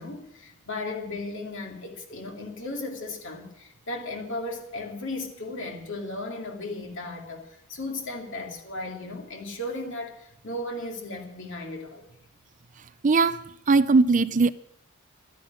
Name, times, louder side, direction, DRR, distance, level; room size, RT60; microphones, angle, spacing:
voice 1, 0.0-12.1, left 2 dB, 60° left, 2.8 m, -36 dB
voice 2, 13.0-13.4 13.7-14.5, right 4 dB, 35° right, 0.5 m, -19 dB
12.5 x 10.0 x 9.5 m
head